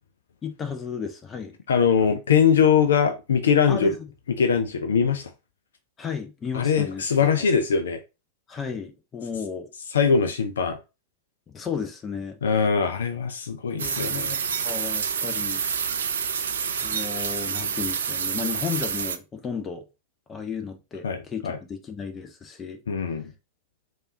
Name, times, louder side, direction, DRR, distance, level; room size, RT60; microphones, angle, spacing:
voice 1, 0.4-1.5 3.7-3.9 6.0-7.5 8.5-9.7 11.5-12.4 13.8-15.6 16.8-19.8 20.3-22.8, left 6 dB, 20° left, 0.6 m, -34 dB
voice 2, 1.7-3.9 4.4-5.2 6.5-8.0 9.9-10.8 12.4-14.4 21.0-21.6 22.9-23.3, left 6 dB, 65° left, 0.4 m, -22 dB
sound 1, 13.8-19.2, right 7 dB, 65° right, 0.4 m, -28 dB
3.4 x 2.5 x 2.7 m
figure-of-eight pair, 90°, 0 cm